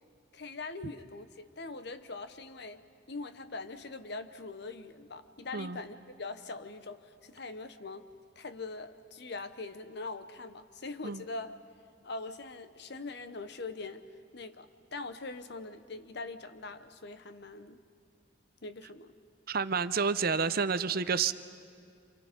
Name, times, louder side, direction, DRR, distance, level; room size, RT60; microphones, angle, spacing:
voice 1, 0.3-2.8 3.1-8.1 8.4-11.6 12.0-14.0 14.3-17.8 18.6-19.1, left 3 dB, 55° left, 10 dB, 1.0 m, -42 dB
voice 2, 19.5-21.3, right 5 dB, 50° right, 13 dB, 0.6 m, -29 dB
28.0 x 28.0 x 5.3 m, 2.3 s
head